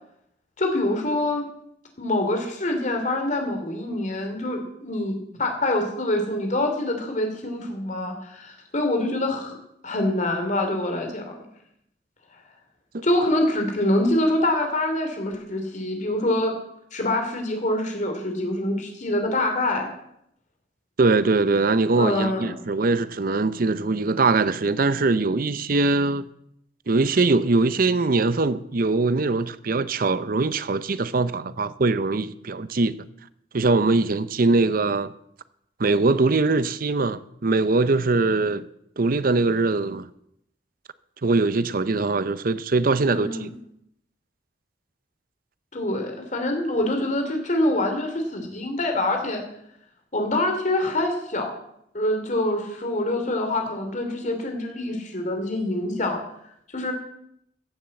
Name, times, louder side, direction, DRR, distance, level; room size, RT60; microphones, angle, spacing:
voice 1, 0.6-1.4 2.0-9.6 9.8-11.4 13.0-16.5 16.9-19.9 21.9-22.6 43.1-43.4 45.7-49.4 50.1-51.5 51.9-56.2 56.7-56.9, left 1 dB, 40° left, 2.9 m, -25 dB
voice 2, 21.0-26.2 26.9-33.0 33.5-35.1 35.8-38.6 39.0-40.1 41.2-43.5, right 3 dB, 50° right, 0.6 m, -22 dB
15.5 x 7.4 x 7.6 m
head